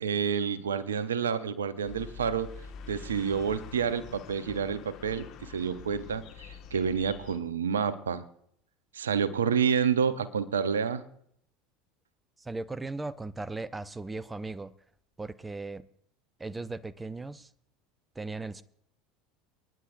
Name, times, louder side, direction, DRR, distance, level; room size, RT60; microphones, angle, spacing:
voice 1, 0.0-2.5 2.9-8.2 8.9-11.0, right 7 dB, 80° right, 0.7 m, -29 dB
sound 1, 1.8-7.4, left 6 dB, 50° left, 1.7 m, -46 dB
voice 2, 12.4-14.7 15.2-15.8 16.4-17.5 18.2-18.6, right 3 dB, 15° right, 0.6 m, -37 dB
28.5 x 10.0 x 2.6 m
figure-of-eight pair, 75°, 0 cm